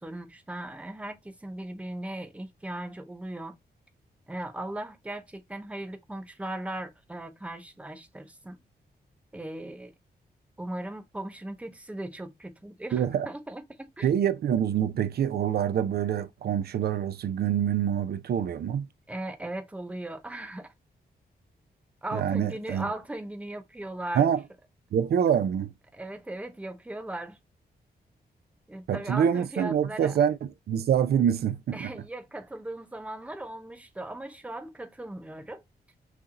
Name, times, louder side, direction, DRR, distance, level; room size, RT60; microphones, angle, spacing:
voice 1, 0.0-3.5 4.3-8.6 9.3-9.9 10.6-14.1 19.1-20.7 22.0-24.3 25.9-27.4 28.7-30.2 31.7-35.6, right 1 dB, 10° right, 0.8 m, -38 dB
voice 2, 12.9-13.3 14.0-18.9 22.1-22.8 24.2-24.4 24.9-25.7 28.9-31.9, right 9 dB, 70° right, 0.4 m, -26 dB
5.9 x 2.6 x 2.9 m
wide cardioid pair, 175°, 17 cm